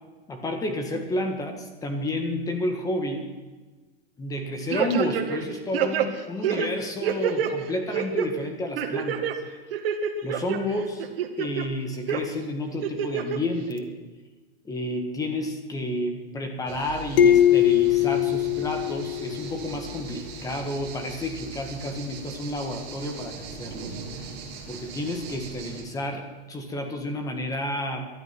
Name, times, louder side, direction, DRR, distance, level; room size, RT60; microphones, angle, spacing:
voice 1, 0.3-3.3 4.2-9.3 10.2-11.1 11.4-13.9 14.7-24.3 24.7-28.1, left 1 dB, 10° left, 5 dB, 1.7 m, -30 dB
sound 1, 4.7-5.4 5.7-7.5 7.9-8.3 8.8-9.3 9.7-10.6 11.0-11.6 12.1-12.2 12.8-13.4 13.8-13.9, right 9 dB, 65° right, 2.0 m, -26 dB
sound 2, 16.7-25.8, right 5 dB, 30° right, 3.1 m, -40 dB
sound 3, 17.2-19.7, left 11 dB, 60° left, 1.8 m, -21 dB
19.0 x 12.0 x 6.1 m, 1.3 s
supercardioid pair, 165°, 31 cm